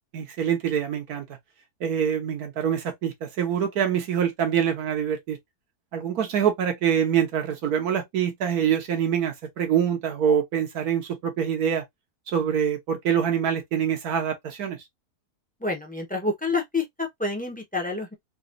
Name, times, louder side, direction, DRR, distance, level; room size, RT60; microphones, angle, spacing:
voice 1, 0.1-1.3 1.8-5.4 5.9-11.8 12.3-14.8, right 8 dB, 75° right, 1.4 m, -25 dB
voice 2, 15.6-18.1, left 3 dB, 10° left, 0.6 m, -28 dB
4.0 x 2.4 x 2.5 m
omnidirectional pair, 1.7 m